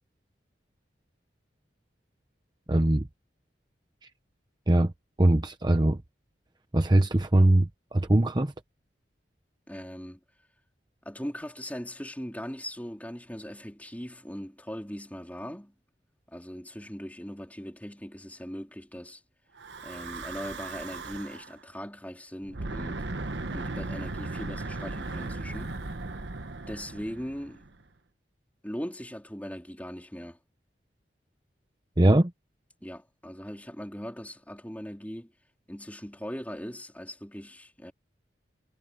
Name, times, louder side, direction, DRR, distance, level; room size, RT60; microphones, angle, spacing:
voice 1, 2.7-3.1 4.7-4.9 5.2-6.0 6.7-8.5 32.0-32.3, right 1 dB, 25° right, 0.8 m, -21 dB
voice 2, 9.7-10.2 11.0-15.7 16.3-19.2 19.8-23.1 23.5-25.8 26.7-27.9 28.6-30.4 32.8-35.3 35.7-37.9, equal, 10° left, 4.0 m, -40 dB
Breathing / Wind, 19.6-21.5 22.4-27.8, right 2 dB, 70° right, 1.2 m, -37 dB
head